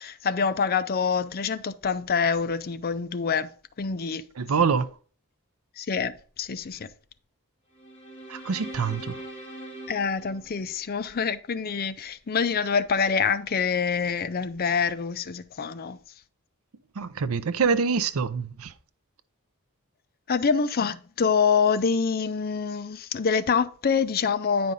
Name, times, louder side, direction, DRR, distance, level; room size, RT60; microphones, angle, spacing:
voice 1, 0.0-3.5 3.8-4.2 5.8-6.9 9.9-16.0 20.3-24.7, left 5 dB, 45° left, 0.5 m, -26 dB
voice 2, 4.4-4.9 8.3-9.2 17.0-18.7, right 5 dB, 70° right, 0.5 m, -25 dB
sound 1, 7.7-11.1, right 1 dB, 25° left, 2.8 m, -42 dB
9.5 x 5.2 x 3.9 m
head